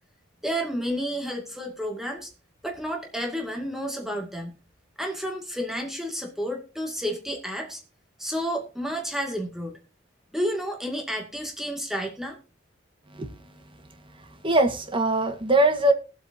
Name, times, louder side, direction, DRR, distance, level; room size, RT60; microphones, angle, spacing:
voice 1, 0.4-2.3 2.6-4.6 5.0-7.8 8.2-9.8 10.3-12.4, equal, ahead, 2.3 m, -31 dB
voice 2, 14.4-15.9, right 1 dB, 25° right, 1.6 m, -21 dB
21.0 x 8.3 x 2.8 m
head